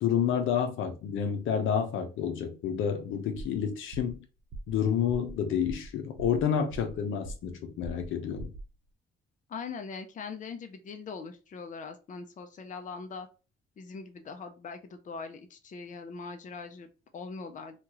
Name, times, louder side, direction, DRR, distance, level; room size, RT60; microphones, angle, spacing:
voice 1, 0.0-4.2 4.7-8.5, left 8 dB, 80° left, 0.7 m, -29 dB
sound 1, 3.4-3.6 3.9-4.2 4.5-4.8 5.1-5.3 5.7-5.9 6.2-7.0 7.2-7.6 7.8-8.1 8.4-8.7, right 2 dB, 70° right, 0.7 m, -42 dB
voice 2, 9.5-13.3 13.8-17.8, left 4 dB, 40° left, 0.5 m, -41 dB
2.9 x 2.4 x 2.9 m
cardioid pair, 90°, 20 cm